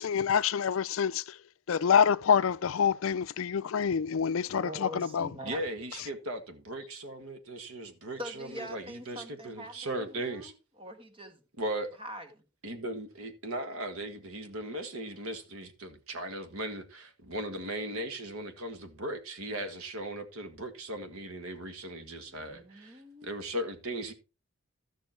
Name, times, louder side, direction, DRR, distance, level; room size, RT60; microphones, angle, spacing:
voice 1, 0.0-1.4 1.7-5.3 6.0-6.1, left 7 dB, 65° left, 0.4 m, -27 dB
voice 2, 4.6-5.6 8.2-10.5 10.8-11.4 12.0-12.4 22.2-23.3, equal, 25° right, 1.5 m, -44 dB
voice 3, 5.4-10.5 11.6-11.9 12.6-24.1, right 1 dB, 75° right, 1.8 m, -38 dB
13.5 x 6.2 x 4.4 m
head